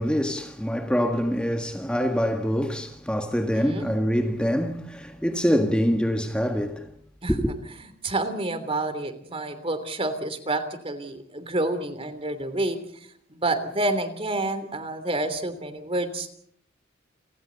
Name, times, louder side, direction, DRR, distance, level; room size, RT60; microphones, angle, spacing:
voice 1, 0.0-6.9 7.3-7.5, equal, 5° left, 1.6 m, -25 dB
voice 2, 3.4-3.9 7.2-16.3, right 2 dB, 30° right, 3.2 m, -29 dB
29.5 x 26.5 x 4.1 m
head